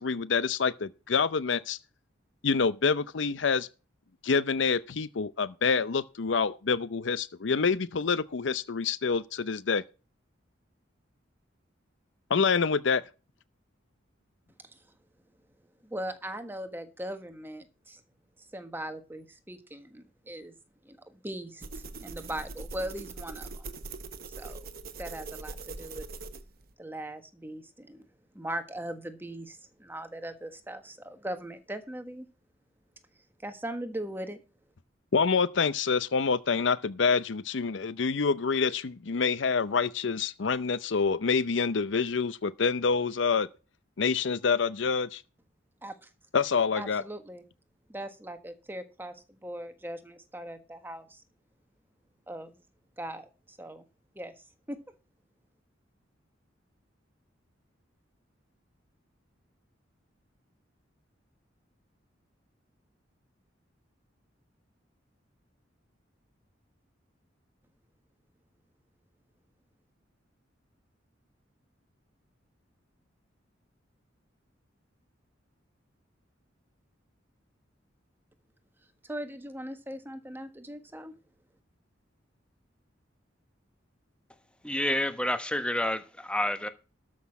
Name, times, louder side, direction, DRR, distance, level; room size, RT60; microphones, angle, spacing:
voice 1, 0.0-1.8 2.4-3.7 4.2-9.8 12.3-13.0 35.1-43.5 44.0-45.2 46.3-47.0, left 5 dB, 70° left, 0.6 m, -27 dB
voice 2, 15.8-18.0 18.4-20.6 20.8-23.7 24.2-24.6 25.0-26.0 26.8-28.0 28.3-32.3 33.4-34.4 45.8-46.1 46.8-47.4 47.9-51.2 52.3-52.6 53.0-53.8 54.1-54.3 54.7-54.8 79.0-81.1, right 1 dB, 10° right, 1.4 m, -39 dB
sound 1, 21.6-26.7, right 3 dB, 50° right, 1.1 m, -42 dB
voice 3, 84.6-86.7, left 1 dB, 5° left, 1.2 m, -29 dB
13.0 x 6.3 x 5.9 m
head